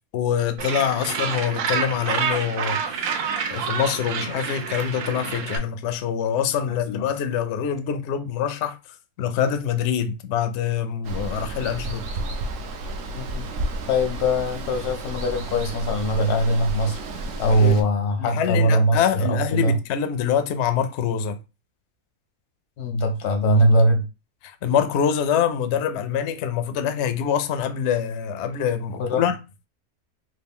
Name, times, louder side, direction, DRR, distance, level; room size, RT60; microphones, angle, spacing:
voice 1, 0.1-3.2 3.5-8.8 9.2-12.0 17.6-17.8 18.2-21.4 24.4-29.4, left 8 dB, 70° left, 0.7 m, -25 dB
Gull seagull, 0.6-5.6, right 6 dB, 80° right, 1.1 m, -28 dB
voice 2, 6.7-7.1 13.1-13.5 13.9-17.0 17.4-19.8 22.8-24.0 29.0-29.2, equal, 85° left, 1.3 m, -21 dB
Water, 11.0-17.8, right 2 dB, 65° right, 0.8 m, -32 dB
3.2 x 2.4 x 3.5 m
omnidirectional pair, 1.6 m